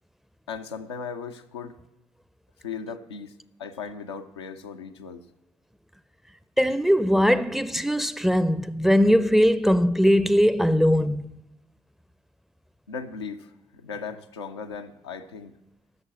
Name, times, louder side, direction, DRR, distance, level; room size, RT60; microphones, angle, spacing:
voice 1, 0.5-1.8 2.6-3.3 3.6-5.2 12.9-15.6, left 5 dB, 90° left, 0.5 m, -37 dB
voice 2, 6.6-11.4, equal, ahead, 0.5 m, -20 dB
13.5 x 6.6 x 7.5 m
figure-of-eight pair, 40°, 14 cm